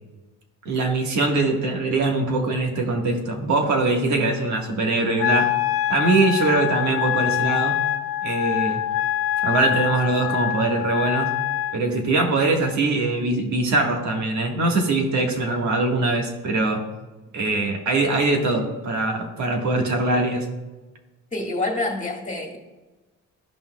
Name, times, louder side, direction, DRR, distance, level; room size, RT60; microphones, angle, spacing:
voice 1, 0.6-5.5 5.9-7.8 8.2-8.8 9.4-11.3 11.7-16.8 17.3-20.5, right 2 dB, 70° right, 2 dB, 1.6 m, -22 dB
Wind instrument woodwind instrument, 5.2-11.8, left 11 dB, 50° left, 0.5 m, -24 dB
voice 2, 21.3-22.6, left 2 dB, 25° left, 1 dB, 1.8 m, -27 dB
13.0 x 5.5 x 2.3 m, 1.2 s
cardioid pair, 90°, 30 cm